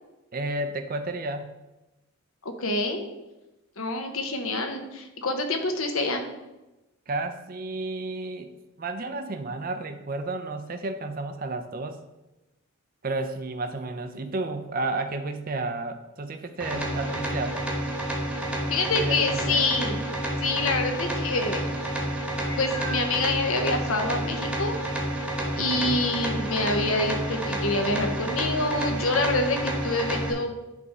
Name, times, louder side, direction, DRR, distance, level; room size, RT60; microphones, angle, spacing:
voice 1, 0.3-1.5 7.1-8.5 8.8-12.0 13.0-17.6 19.0-19.6 25.6-26.0, right 2 dB, 40° right, 7 dB, 0.5 m, -32 dB
voice 2, 2.4-3.0 3.8-6.3 18.7-20.0 20.4-21.7 22.0-22.1 22.6-24.8 25.5-30.5, left 2 dB, 70° left, 5 dB, 1.0 m, -26 dB
sound 1, 16.6-30.3, right 1 dB, 5° right, 1.1 m, -30 dB
Meow, 22.4-23.1 23.9-24.0 24.5-24.6 28.6-28.7, right 2 dB, 15° left, 0.6 m, -38 dB
9.4 x 3.7 x 5.4 m, 1.0 s
head